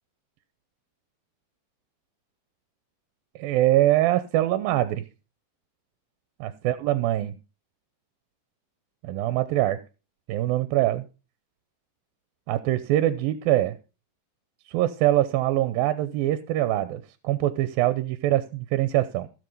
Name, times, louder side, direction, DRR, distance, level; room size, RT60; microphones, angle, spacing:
voice 1, 3.4-5.0 6.4-7.3 9.0-9.8 10.3-11.0 12.5-13.8 14.7-19.3, right 14 dB, 85° right, 12 dB, 2.6 m, -23 dB
16.0 x 7.4 x 5.4 m, 0.33 s
omnidirectional pair, 4.1 m